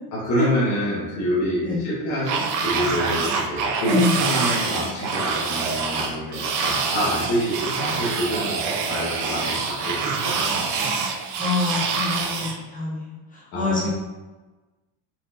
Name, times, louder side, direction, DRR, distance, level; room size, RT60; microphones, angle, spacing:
voice 1, 0.1-10.0 10.2-10.7 13.5-13.9, equal, 40° left, -8 dB, 1.1 m, -26 dB
sound 1, 2.2-12.6, right 4 dB, 45° right, 0.5 m, -26 dB
voice 2, 3.9-4.2 11.4-13.9, left 3 dB, 20° left, -4 dB, 0.4 m, -26 dB
4.6 x 3.7 x 2.4 m, 1.2 s
cardioid pair, 165°, 47 cm